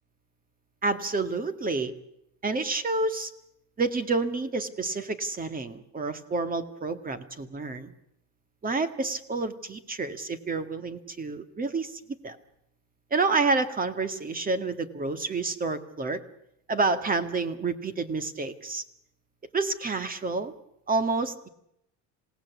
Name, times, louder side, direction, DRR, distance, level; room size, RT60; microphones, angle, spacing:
voice 1, 0.8-1.9 2.4-3.3 3.8-7.9 8.6-12.4 13.1-16.2 16.7-18.8 19.5-20.5 20.9-21.5, right 3 dB, 20° right, 11 dB, 2.0 m, -29 dB
27.0 x 18.0 x 8.4 m, 0.77 s
supercardioid pair, 120°, 38 cm